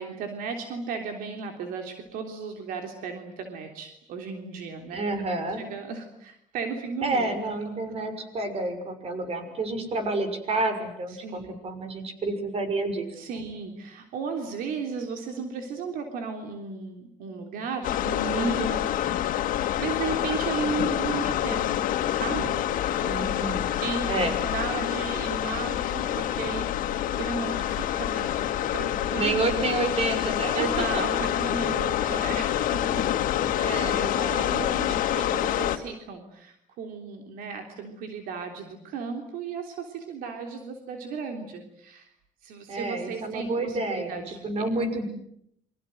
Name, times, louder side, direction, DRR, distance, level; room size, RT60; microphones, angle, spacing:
voice 1, 0.0-5.1 5.6-7.3 9.8-9.9 11.1-11.6 13.1-21.8 22.1-22.6 23.8-26.7 27.1-28.5 28.7-29.4 30.5-33.2 33.5-33.9 34.3-42.1 42.4-44.7, right 5 dB, 85° right, 5 dB, 3.5 m, -35 dB
voice 2, 4.9-5.6 7.0-13.1 23.0-23.7 24.1-24.4 29.1-31.0 33.5-34.5 42.7-45.0, right 2 dB, 45° right, 9 dB, 6.4 m, -29 dB
sound 1, 17.8-35.8, left 11 dB, 75° left, 2.2 m, -27 dB
28.5 x 24.5 x 7.9 m, 0.71 s
cardioid pair, 115°, 14 cm